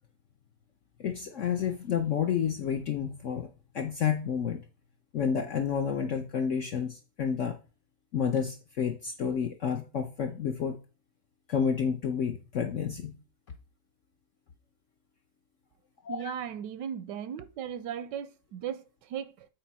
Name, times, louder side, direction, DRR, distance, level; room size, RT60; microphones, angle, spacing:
voice 1, 1.0-3.5 3.7-4.6 5.1-7.6 8.1-10.8 11.5-13.1 16.0-16.3, left 7 dB, 60° left, 0.8 m, -30 dB
voice 2, 16.1-19.5, right 9 dB, 85° right, 1.3 m, -37 dB
8.5 x 4.3 x 4.1 m
omnidirectional pair, 1.8 m